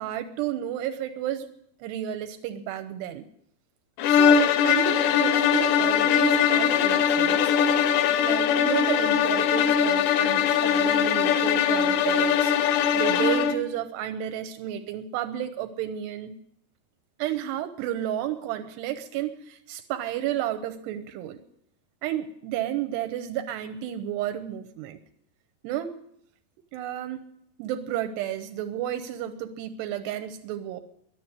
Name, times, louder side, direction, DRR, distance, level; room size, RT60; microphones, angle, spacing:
voice 1, 0.0-1.5 1.8-3.2 4.1-7.5 8.1-16.4 17.2-21.4 22.0-25.0 25.6-26.0 26.7-27.2 27.6-30.8, right 11 dB, 80° right, 9 dB, 2.8 m, -32 dB
sound 1, 4.0-13.7, left 8 dB, 80° left, 2.9 m, -21 dB
11.5 x 10.0 x 9.6 m, 0.71 s
omnidirectional pair, 5.0 m